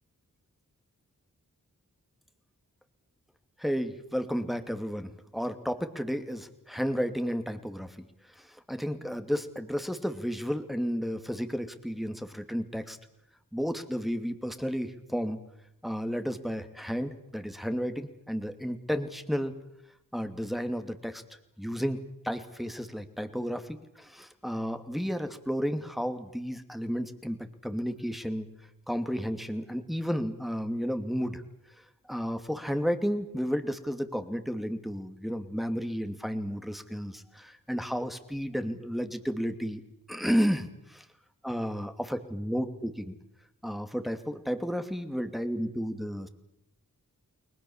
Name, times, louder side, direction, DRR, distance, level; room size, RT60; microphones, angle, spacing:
voice 1, 3.6-8.1 8.7-13.0 13.5-15.4 15.8-19.5 20.1-21.2 21.6-22.0 22.2-28.5 28.9-31.4 32.1-39.8 40.1-41.0 41.4-43.2 43.6-46.3, equal, ahead, 8 dB, 2.6 m, -32 dB
30.0 x 21.0 x 7.3 m, 0.83 s
cardioid pair, 45°, 34 cm